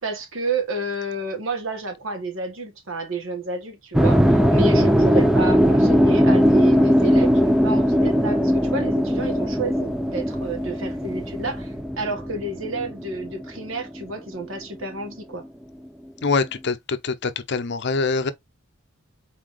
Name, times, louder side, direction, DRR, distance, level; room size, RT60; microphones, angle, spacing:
voice 1, 0.0-15.4, right 2 dB, 70° right, 1.4 m, -30 dB
sound 1, 3.9-14.1, equal, ahead, 0.4 m, -19 dB
voice 2, 16.2-18.3, left 4 dB, 55° left, 0.7 m, -24 dB
4.3 x 3.9 x 3.0 m
head